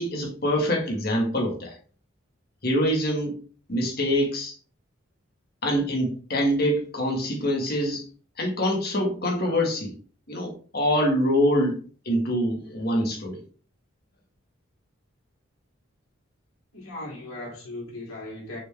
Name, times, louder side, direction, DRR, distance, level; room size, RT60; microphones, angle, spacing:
voice 1, 0.0-1.7 2.6-3.3 3.7-4.5 5.6-8.0 8.4-9.9 10.3-11.8 12.0-13.4, equal, 50° left, 1.8 m, -25 dB
voice 2, 16.7-18.6, left 2 dB, 90° left, 2.7 m, -37 dB
6.2 x 4.6 x 3.4 m
head